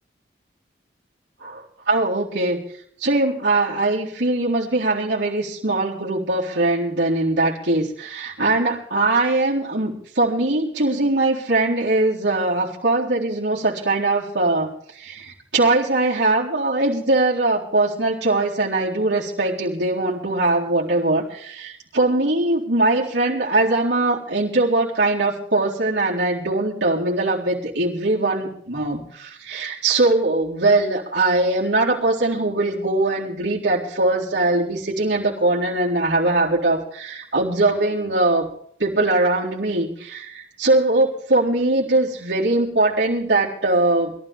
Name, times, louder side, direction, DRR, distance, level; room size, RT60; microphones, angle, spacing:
voice 1, 1.4-2.6 3.0-38.5 38.8-44.2, right 2 dB, 80° right, -5 dB, 4.0 m, -21 dB
22.5 x 14.0 x 3.6 m, 0.64 s
head